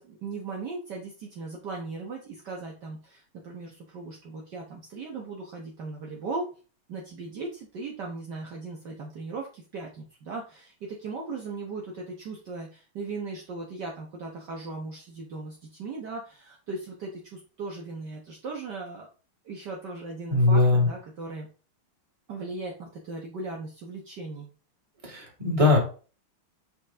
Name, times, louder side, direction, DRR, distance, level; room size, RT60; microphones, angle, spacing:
voice 1, 0.0-6.5 6.9-19.1 19.4-21.5 22.3-24.5, right 3 dB, 55° right, -1 dB, 1.7 m, -38 dB
voice 2, 20.3-20.9 25.0-25.8, left 3 dB, 15° right, -1 dB, 2.5 m, -20 dB
7.4 x 5.3 x 3.6 m, 0.36 s
omnidirectional pair, 2.4 m